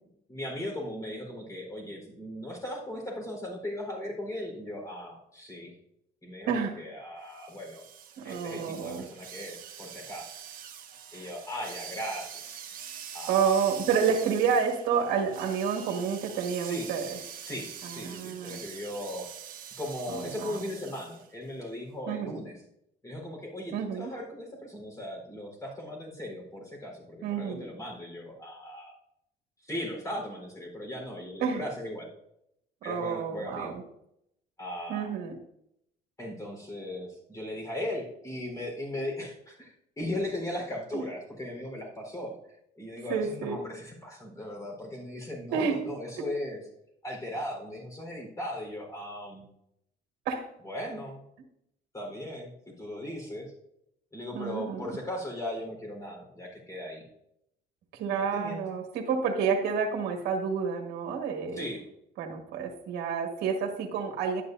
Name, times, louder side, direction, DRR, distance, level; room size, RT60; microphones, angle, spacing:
voice 1, 0.3-5.7 6.2-7.8 8.2-10.3 11.1-12.4 13.1-13.5 16.6-16.9 17.5-19.3 19.8-22.6 23.0-29.0 29.6-32.1 32.8-33.8 34.6-35.1 36.2-42.3 42.8-46.6 47.0-49.5 50.6-51.2 51.9-53.5 54.1-57.1 58.1-58.6 61.5-61.8, left 1 dB, 20° left, 0 dB, 4.2 m, -38 dB
voice 2, 6.5-6.8 8.2-9.1 11.1-11.3 13.3-17.2 17.8-18.6 20.1-20.6 22.1-22.4 23.7-24.1 27.2-27.6 31.4-31.6 32.8-33.8 34.9-35.3 40.9-41.0 43.1-43.6 45.5-45.8 46.2-46.3 50.2-50.5 54.3-54.9 57.9-61.6 62.2-64.4, right 6 dB, 75° right, 2 dB, 1.6 m, -29 dB
sound 1, 7.3-21.3, right 8 dB, 55° right, 1.6 m, -44 dB
11.5 x 10.0 x 2.7 m, 0.77 s
cardioid pair, 110°, 17 cm